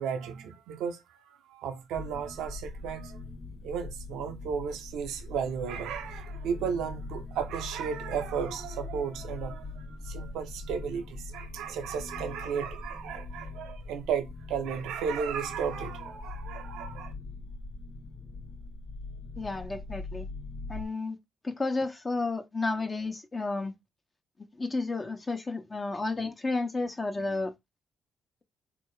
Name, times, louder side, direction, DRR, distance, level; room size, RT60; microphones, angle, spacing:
voice 1, 0.0-3.2 3.6-17.1, right 7 dB, 85° right, 0.6 m, -34 dB
sound 1, 2.0-20.9, left 3 dB, 50° left, 0.6 m, -42 dB
voice 2, 19.4-20.3 20.7-21.2 21.4-23.7 24.6-27.5, left 3 dB, 35° left, 1.0 m, -32 dB
3.6 x 2.8 x 3.2 m
supercardioid pair, 55°, 0 cm